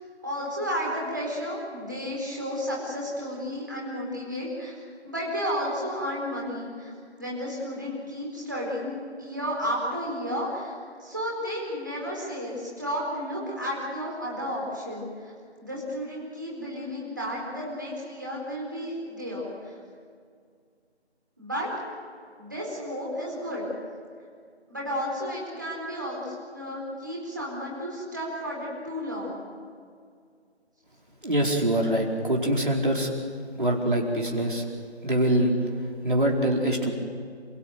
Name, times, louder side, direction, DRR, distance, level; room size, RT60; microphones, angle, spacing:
voice 1, 0.2-4.7 5.0-6.9 7.2-15.3 15.6-19.8 21.4-21.7 22.4-23.7 24.7-29.4, equal, 15° right, -4 dB, 4.4 m, -32 dB
voice 2, 31.2-33.1 33.6-34.7 35.0-35.5 36.0-36.9, right 1 dB, 50° right, 0 dB, 4.6 m, -24 dB
29.0 x 16.5 x 9.4 m, 2.1 s
figure-of-eight pair, 180°, 34 cm